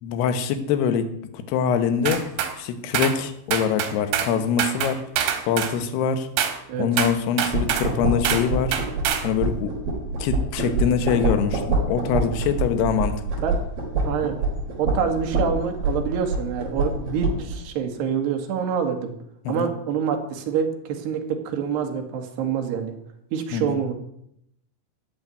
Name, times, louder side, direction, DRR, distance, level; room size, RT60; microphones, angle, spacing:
voice 1, 0.0-2.3 2.6-5.0 5.4-6.3 6.8-8.8 9.2-9.8 10.2-13.2 19.4-19.7 23.5-23.8, left 7 dB, 65° left, 9 dB, 3.0 m, -24 dB
sound 1, 2.1-2.5 2.9-3.2 3.5-4.3 4.6-5.8 6.4-6.6 7.0-7.9 8.2-8.5 8.7-9.3, right 9 dB, 85° right, 4.3 m, -25 dB
sound 2, 7.5-17.6, right 2 dB, 45° right, 5.5 m, -26 dB
voice 2, 14.1-14.4 14.8-19.1 19.5-22.9 23.3-23.9, right 7 dB, 60° right, 4 dB, 3.7 m, -26 dB
14.5 x 8.6 x 9.3 m, 0.75 s
omnidirectional pair, 5.8 m